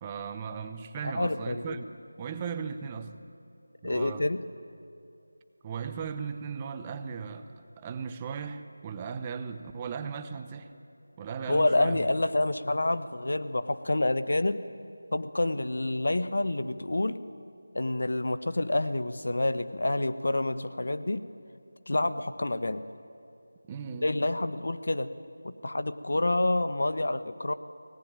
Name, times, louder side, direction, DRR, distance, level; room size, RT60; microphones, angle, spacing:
voice 1, 0.0-3.2 3.8-4.2 5.6-10.7 11.2-12.0 23.7-24.1, right 6 dB, 15° right, 9 dB, 0.8 m, -37 dB
voice 2, 1.0-1.8 3.8-4.4 11.5-14.6 15.1-17.2 17.7-21.2 21.9-22.8 24.0-25.1 25.4-27.5, left 2 dB, 65° left, 12 dB, 1.1 m, -28 dB
24.0 x 18.5 x 9.0 m, 2.6 s
figure-of-eight pair, 170°, 0 cm